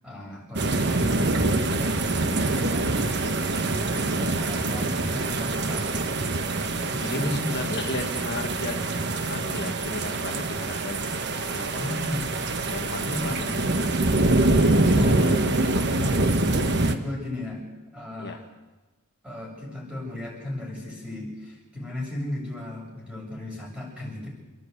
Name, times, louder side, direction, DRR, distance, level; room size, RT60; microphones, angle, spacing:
voice 1, 0.0-3.4 3.8-6.2 6.9-7.6 11.8-12.4 13.1-13.6 14.7-16.6 16.8-17.6 17.9-18.5 19.2-24.3, left 1 dB, 5° right, -3 dB, 7.4 m, -35 dB
sound 1, 0.6-17.0, right 2 dB, 50° right, 1.2 m, -25 dB
voice 2, 7.0-8.9 9.3-11.1 11.4-11.9 12.7-13.7 18.2-18.3, left 2 dB, 50° left, 2 dB, 1.5 m, -35 dB
29.0 x 11.0 x 8.4 m, 1.1 s
head